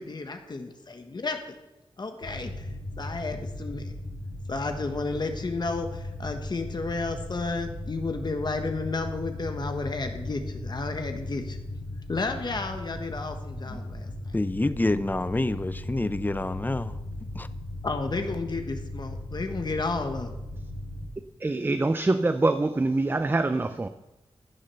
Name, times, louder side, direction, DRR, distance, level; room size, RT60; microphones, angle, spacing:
voice 1, 0.0-1.4 2.0-3.9 4.5-11.6 12.1-14.1 17.8-20.4, left 3 dB, 45° left, 1.3 m, -32 dB
sound 1, 2.2-21.1, left 1 dB, 80° left, 3.4 m, -37 dB
voice 2, 14.3-16.9 17.3-17.5, left 2 dB, 20° left, 0.6 m, -27 dB
voice 3, 21.4-23.9, right 2 dB, 20° right, 0.6 m, -24 dB
15.0 x 7.3 x 6.9 m
wide cardioid pair, 110°, 10 cm